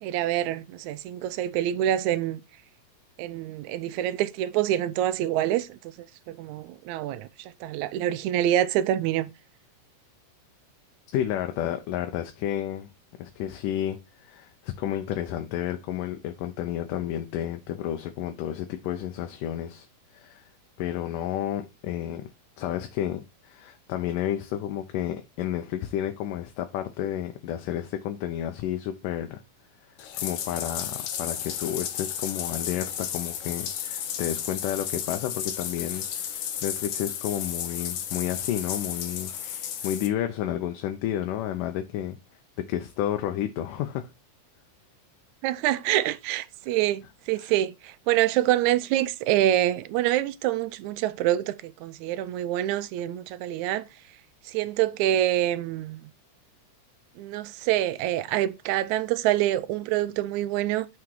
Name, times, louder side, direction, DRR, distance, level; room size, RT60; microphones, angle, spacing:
voice 1, 0.0-2.4 3.2-5.8 6.3-9.3 45.4-53.8 54.5-56.0 57.2-60.9, right 13 dB, 80° right, 1.8 m, -26 dB
voice 2, 11.1-12.9 13.2-19.9 20.1-20.5 20.8-22.3 22.6-29.4 30.2-42.2 42.6-44.1 47.4-47.5, left 11 dB, 90° left, 2.4 m, -31 dB
Bathtub (filling or washing), 30.0-40.1, left 9 dB, 70° left, 2.2 m, -33 dB
6.0 x 5.9 x 4.7 m
omnidirectional pair, 3.7 m